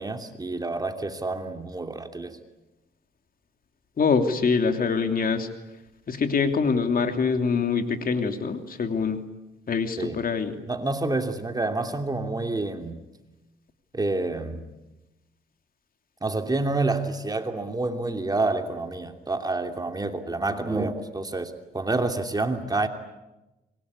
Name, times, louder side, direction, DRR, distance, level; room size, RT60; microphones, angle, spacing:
voice 1, 0.0-2.4 10.0-10.2 10.7-13.0 13.9-14.6 16.2-22.9, right 2 dB, 20° right, 2.8 m, -28 dB
voice 2, 4.0-5.5 6.1-9.2 9.7-10.5, left 5 dB, 45° left, 3.0 m, -24 dB
26.0 x 22.5 x 9.8 m
cardioid pair, 90°, 20 cm